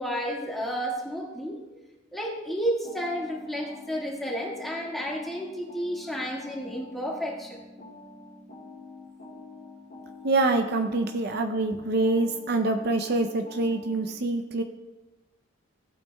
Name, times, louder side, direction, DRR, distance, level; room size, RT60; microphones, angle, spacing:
voice 1, 0.0-1.6 2.1-7.6, equal, ahead, -3 dB, 1.7 m, -31 dB
sound 1, 2.8-14.1, left 2 dB, 50° left, 2.1 m, -47 dB
voice 2, 10.2-14.6, right 2 dB, 55° right, 6 dB, 0.6 m, -25 dB
16.0 x 8.6 x 2.3 m, 1.1 s
head